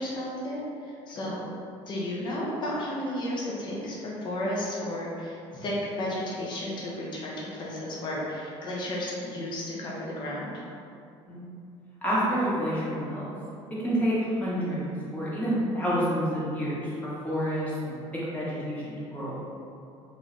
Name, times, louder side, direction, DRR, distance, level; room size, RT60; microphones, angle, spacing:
voice 1, 0.0-1.4 1.9-10.5, left 1 dB, 40° left, -5 dB, 0.8 m, -33 dB
voice 2, 12.0-13.3 13.7-19.4, equal, 15° left, -9 dB, 1.1 m, -29 dB
3.3 x 2.4 x 3.9 m, 2.6 s
cardioid pair, 130°, 12 cm